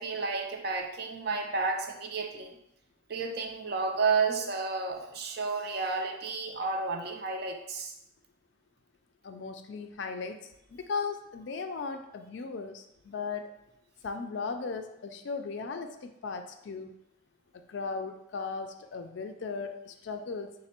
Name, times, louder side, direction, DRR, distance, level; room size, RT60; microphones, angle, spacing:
voice 1, 0.0-2.6 3.1-7.9, right 4 dB, 50° right, 4 dB, 0.4 m, -31 dB
voice 2, 9.2-13.5 14.0-16.9 17.5-20.5, left 4 dB, 60° left, 7 dB, 0.3 m, -37 dB
4.2 x 2.1 x 4.2 m, 0.81 s
head